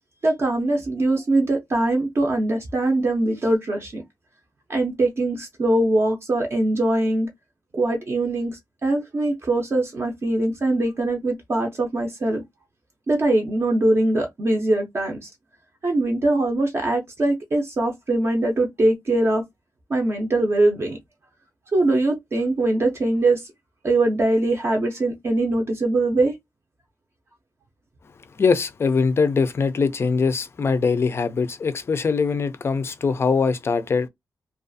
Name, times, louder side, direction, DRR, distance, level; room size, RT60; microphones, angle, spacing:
voice 1, 0.2-4.0 4.7-7.3 7.7-12.4 13.1-15.3 15.8-19.4 19.9-21.0 21.7-23.5 23.8-26.3, right 2 dB, 35° right, 0.5 m, -22 dB
voice 2, 28.4-34.1, left 5 dB, 40° left, 0.4 m, -22 dB
2.4 x 2.3 x 2.5 m
wide cardioid pair, 170°, 7 cm